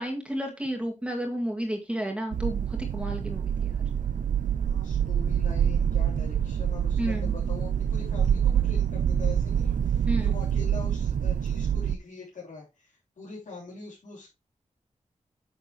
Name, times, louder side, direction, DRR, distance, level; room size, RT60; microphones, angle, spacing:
voice 1, 0.0-3.7 7.0-7.3 10.1-10.3, equal, 10° right, 1 dB, 2.0 m, -32 dB
sound 1, 2.3-12.0, right 8 dB, 90° right, 0.4 m, -26 dB
voice 2, 4.6-14.3, left 3 dB, 85° left, -7 dB, 3.7 m, -43 dB
9.2 x 6.5 x 3.1 m, 0.25 s
wide cardioid pair, 140°, 13 cm